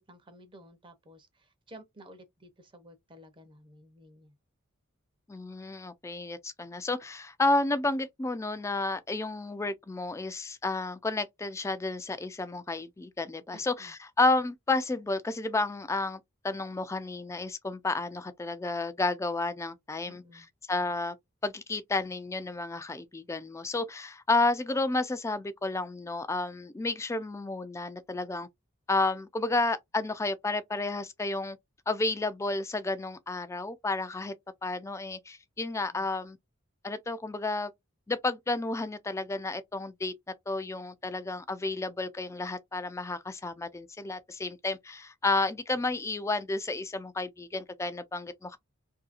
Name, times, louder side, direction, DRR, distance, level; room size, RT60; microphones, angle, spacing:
voice 1, 0.0-4.4 13.5-13.9 20.0-20.5 35.9-36.1, equal, 25° right, 0.6 m, -53 dB
voice 2, 5.3-20.2 20.7-21.2 21.4-28.5 28.9-31.6 31.9-34.3 34.6-36.4 36.8-37.7 38.1-40.1 40.5-48.6, left 2 dB, 15° left, 0.3 m, -31 dB
2.7 x 2.7 x 2.4 m
head